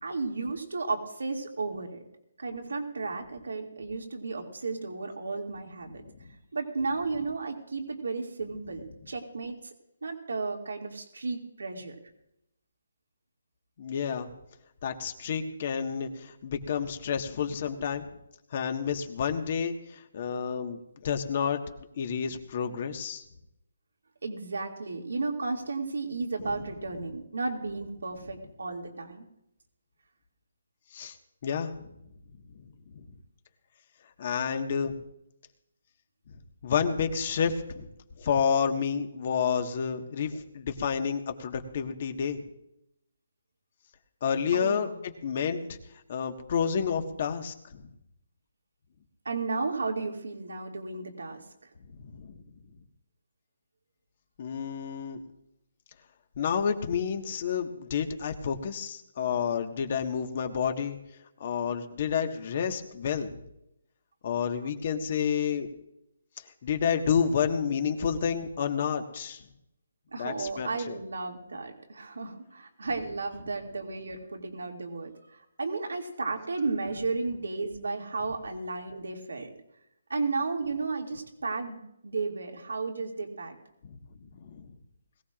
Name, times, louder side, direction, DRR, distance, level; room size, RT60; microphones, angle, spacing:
voice 1, 0.0-2.0 2.4-6.0 6.5-9.6 10.0-12.0 24.2-29.2 44.5-44.9 49.2-51.4 70.1-79.5 80.1-83.6, right 3 dB, 85° right, 2 dB, 2.5 m, -33 dB
voice 2, 13.8-14.3 14.8-18.1 18.5-21.6 22.0-23.2 30.9-31.1 31.4-31.7 32.9-33.0 34.2-35.0 36.6-37.9 38.2-42.4 44.2-45.7 46.1-47.9 52.1-52.3 54.4-55.2 56.4-61.0 61.4-63.4 64.2-65.7 66.6-69.4 70.2-71.0 83.8-84.0 84.3-84.7, left 7 dB, 45° left, 6 dB, 1.6 m, -30 dB
21.0 x 16.0 x 2.5 m, 0.82 s
hypercardioid pair, 155°, 0 cm